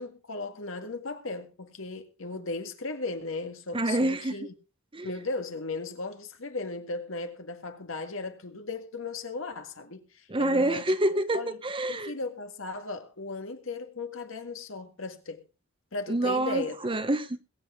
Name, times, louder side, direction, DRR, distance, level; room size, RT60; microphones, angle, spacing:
voice 1, 0.0-4.5 5.0-11.0 11.3-11.6 11.9-15.4 15.9-16.8, left 3 dB, 70° left, 1.9 m, -36 dB
voice 2, 3.7-4.4 4.9-5.1 10.3-12.1 16.1-17.4, right 1 dB, 25° right, 1.0 m, -27 dB
22.0 x 8.4 x 3.8 m
head